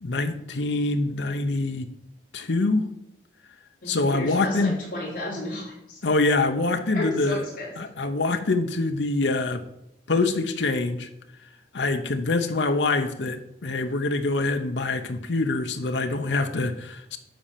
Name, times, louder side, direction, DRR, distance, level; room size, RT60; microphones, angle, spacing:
voice 1, 0.0-1.9 2.3-2.9 3.9-4.8 6.0-7.4 7.8-9.6 10.1-11.1 11.7-17.2, left 3 dB, 85° left, 7 dB, 0.8 m, -25 dB
voice 2, 3.8-6.0 6.9-7.7, left 1 dB, 50° left, -6 dB, 4.2 m, -33 dB
10.5 x 4.3 x 7.3 m, 0.82 s
head